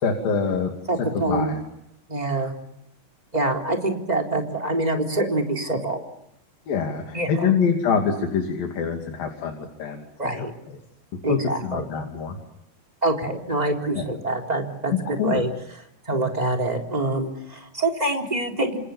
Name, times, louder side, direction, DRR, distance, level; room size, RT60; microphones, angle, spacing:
voice 1, 0.0-0.7 1.1-1.6 6.7-10.1 10.3-10.5 11.3-12.4 13.9-14.0 15.1-15.4, left 6 dB, 70° left, 2 dB, 4.3 m, -25 dB
voice 2, 0.9-1.5 2.1-2.5 3.3-6.0 7.1-7.5 10.2-10.5 11.2-11.9 13.0-15.5 16.1-18.8, right 2 dB, 10° right, 2 dB, 3.6 m, -25 dB
29.0 x 27.5 x 7.3 m, 0.79 s
omnidirectional pair, 4.3 m